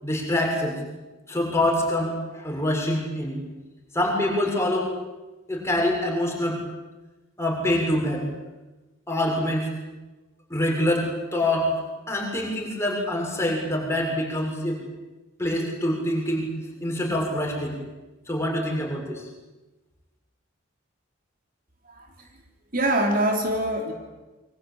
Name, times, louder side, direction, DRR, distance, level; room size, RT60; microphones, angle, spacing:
voice 1, 0.0-0.8 1.3-3.4 3.9-4.9 5.5-6.6 7.4-8.2 9.1-9.7 10.5-11.7 12.1-14.8 15.4-17.8 18.3-19.3, left 1 dB, 15° left, 0 dB, 6.9 m, -25 dB
voice 2, 21.8-22.3 22.7-23.9, right 1 dB, 40° right, 3 dB, 3.5 m, -24 dB
28.0 x 24.0 x 8.8 m, 1.1 s
head